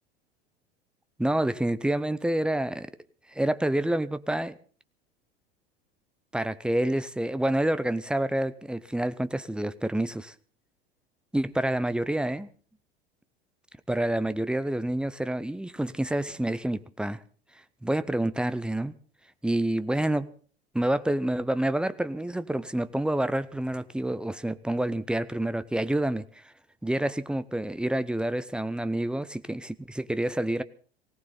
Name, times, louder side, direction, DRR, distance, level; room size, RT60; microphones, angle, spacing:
voice 1, 1.2-2.9 3.3-4.5 6.3-10.3 11.3-12.5 13.9-17.2 17.8-18.9 19.4-20.3 20.7-26.4 26.8-30.6, right 1 dB, 5° right, 0.7 m, -28 dB
19.5 x 17.5 x 4.1 m
figure-of-eight pair, 80°, 31 cm